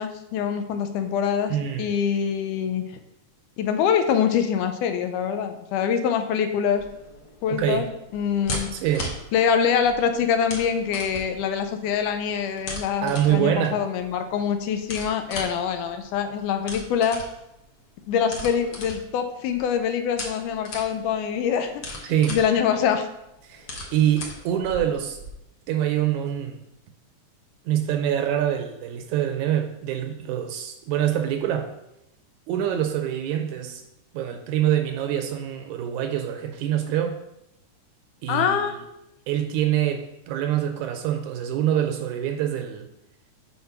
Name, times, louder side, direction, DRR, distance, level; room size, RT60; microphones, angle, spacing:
voice 1, 0.0-2.8 3.6-6.8 7.4-7.9 8.1-8.7 9.3-17.2 18.1-23.1 38.3-38.8, left 7 dB, 85° left, 7 dB, 2.2 m, -24 dB
voice 2, 1.5-2.0 7.5-7.9 8.7-9.2 13.0-13.8 22.0-22.4 23.4-25.2 25.7-26.6 27.7-31.7 32.5-33.8 34.1-37.2 38.2-38.7 39.3-42.9, right 11 dB, 80° right, 5 dB, 1.9 m, -25 dB
sound 1, 6.7-25.3, left 1 dB, 60° left, 1.1 m, -39 dB
5.9 x 4.3 x 5.8 m, 0.85 s
omnidirectional pair, 3.6 m